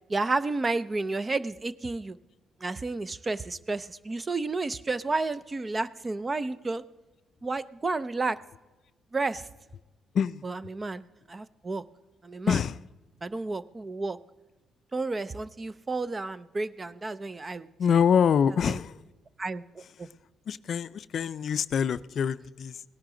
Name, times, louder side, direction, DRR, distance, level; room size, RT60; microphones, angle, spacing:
voice 1, 0.1-2.2 2.6-6.8 7.4-8.4 9.1-9.5 10.4-11.8 12.2-12.6 13.2-14.2 14.9-18.0 18.7-18.8 19.4-20.1, right 3 dB, 25° right, 0.5 m, -31 dB
voice 2, 12.5-12.8 17.8-19.0 20.0-20.1 20.5-22.8, left 7 dB, 60° left, 0.4 m, -25 dB
18.0 x 10.5 x 3.8 m
cardioid pair, 90°, 0 cm